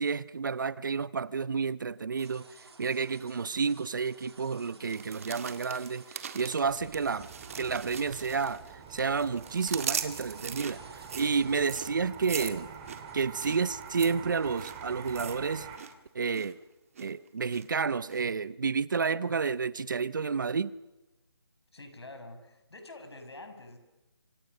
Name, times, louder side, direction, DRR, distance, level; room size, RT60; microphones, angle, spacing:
voice 1, 0.0-2.5 2.8-7.3 7.6-8.6 8.9-10.8 11.1-12.7 13.1-15.7 16.1-16.6 17.0-20.7, right 5 dB, 50° right, 0.9 m, -30 dB
sound 1, 2.2-15.7, right 3 dB, 75° right, 2.8 m, -56 dB
sound 2, 4.9-8.7 9.0-15.9 16.2-16.5 16.9-17.6 18.1-18.2, right 7 dB, 35° right, 1.8 m, -40 dB
sound 3, 6.6-15.8, right 7 dB, 15° right, 2.3 m, -46 dB
voice 2, 21.7-23.8, left 2 dB, 80° left, 6.6 m, -47 dB
28.0 x 26.0 x 6.6 m
hypercardioid pair, 170°, 13 cm